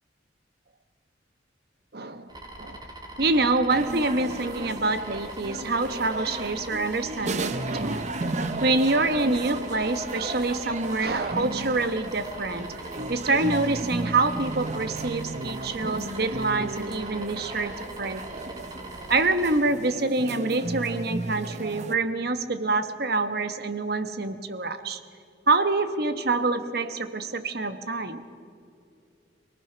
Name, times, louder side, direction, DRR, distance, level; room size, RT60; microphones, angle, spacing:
voice 1, 1.9-2.3 2.6-2.8 3.2-8.1 8.6-12.7 13.1-18.5 19.1-25.0 25.5-28.2, right 3 dB, 55° right, 10 dB, 1.2 m, -26 dB
sound 1, 2.3-19.6, right 1 dB, 20° right, 1.9 m, -42 dB
sound 2, 3.7-21.9, right 2 dB, 40° right, 0.8 m, -34 dB
27.5 x 19.0 x 6.1 m, 2.4 s
head